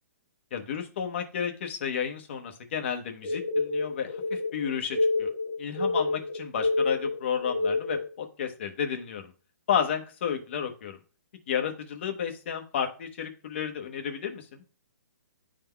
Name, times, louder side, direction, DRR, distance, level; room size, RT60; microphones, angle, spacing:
voice 1, 0.5-5.3 5.6-9.3 9.7-11.0 11.5-14.5, left 8 dB, 35° left, 4 dB, 1.0 m, -32 dB
sound 1, 3.2-8.1, left 3 dB, 55° left, 1.3 m, -28 dB
11.0 x 3.7 x 2.3 m, 0.37 s
hypercardioid pair, 170°, 10 cm